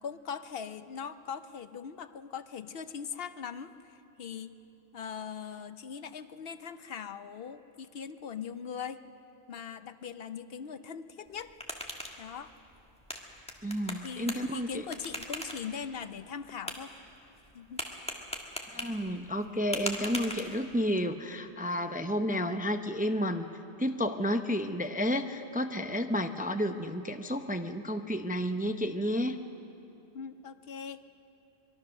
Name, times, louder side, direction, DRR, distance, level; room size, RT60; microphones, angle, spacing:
voice 1, 0.0-4.6 4.9-9.0 9.5-11.5 12.2-12.5 14.0-16.9 17.5-17.9 30.1-31.0, left 7 dB, 65° left, 11 dB, 0.9 m, -40 dB
sound 1, 11.3-20.9, equal, 5° left, 1.8 m, -42 dB
voice 2, 13.6-14.7 18.7-23.5 23.8-29.4, equal, 10° right, 7 dB, 0.5 m, -31 dB
24.5 x 22.0 x 6.5 m, 2.8 s
omnidirectional pair, 1.1 m